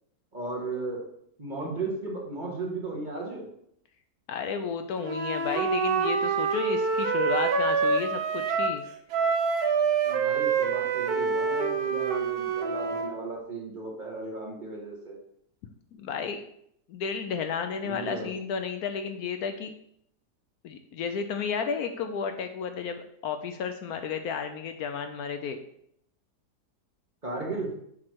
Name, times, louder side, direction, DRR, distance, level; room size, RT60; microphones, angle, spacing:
voice 1, 0.3-1.0 1.4-3.4 10.0-15.2 17.8-18.3 27.2-27.7, right 3 dB, 30° right, -2 dB, 1.7 m, -35 dB
voice 2, 4.3-8.8 15.9-16.4 16.9-19.7 20.6-25.6, left 6 dB, 75° left, 7 dB, 1.0 m, -32 dB
Wind instrument woodwind instrument, 5.0-8.8 9.1-13.1, right 5 dB, 70° right, 1.2 m, -26 dB
7.5 x 3.2 x 6.1 m, 0.71 s
omnidirectional pair, 1.8 m